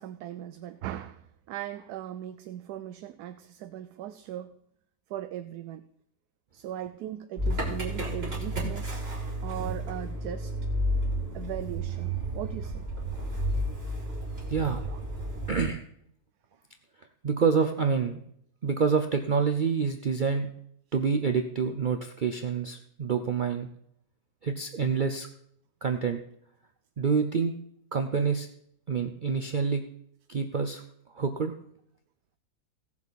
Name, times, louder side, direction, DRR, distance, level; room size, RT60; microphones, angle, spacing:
voice 1, 0.0-4.5 5.1-5.8 6.5-9.1 9.4-10.5 11.3-12.9 14.8-15.0, right 11 dB, 75° right, 9 dB, 1.1 m, -39 dB
Motor vehicle (road) / Engine starting, 7.4-15.7, right 1 dB, 35° right, 3.0 m, -32 dB
voice 2, 14.5-14.8 15.5-15.8 17.2-18.2 18.6-20.5 20.9-23.7 24.4-25.3 25.8-26.2 27.0-27.5 27.9-28.5 28.9-29.8 30.3-30.8 31.1-31.5, right 5 dB, 60° right, 6 dB, 0.5 m, -27 dB
17.0 x 7.2 x 4.1 m, 0.72 s
omnidirectional pair, 1.7 m